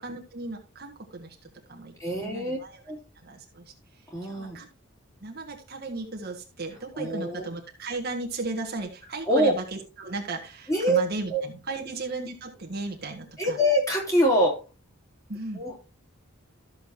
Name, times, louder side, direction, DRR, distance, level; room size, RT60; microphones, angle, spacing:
voice 1, 0.0-2.8 3.2-3.7 4.2-4.7 5.2-13.6 15.3-15.7, right 3 dB, 50° right, 1 dB, 1.6 m, -36 dB
voice 2, 2.0-2.6 2.9-3.0 4.1-4.6 6.9-7.4 9.3-9.5 10.7-11.0 11.3-11.4 13.4-14.6 15.5-15.7, equal, 15° left, -2 dB, 3.1 m, -24 dB
13.5 x 6.8 x 2.7 m, 0.31 s
head